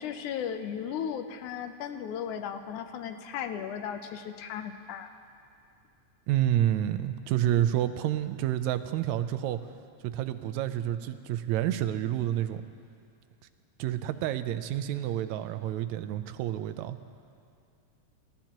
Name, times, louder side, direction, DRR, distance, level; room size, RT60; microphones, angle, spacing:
voice 1, 0.0-5.1, left 8 dB, 90° left, 8 dB, 2.2 m, -36 dB
voice 2, 6.3-9.6 10.0-12.6 13.8-17.0, right 12 dB, 80° right, 10 dB, 1.8 m, -29 dB
26.5 x 13.0 x 3.0 m, 2.4 s
omnidirectional pair, 3.4 m